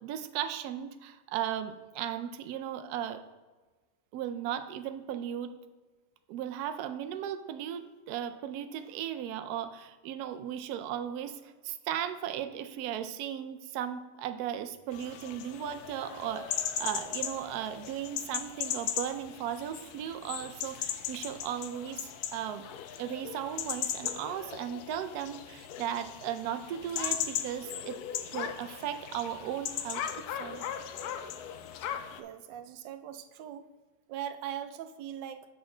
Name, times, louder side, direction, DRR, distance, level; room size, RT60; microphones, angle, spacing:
voice 1, 0.0-3.2 4.1-5.5 6.3-22.6 23.0-28.0 28.3-30.6, right 10 dB, 70° right, 9 dB, 1.0 m, -36 dB
sound 1, 14.9-32.2, left 9 dB, 70° left, 1.0 m, -38 dB
voice 2, 32.2-33.7 34.1-35.5, right 10 dB, 90° right, 10 dB, 1.3 m, -40 dB
6.9 x 6.3 x 3.8 m, 1.3 s
omnidirectional pair, 1.9 m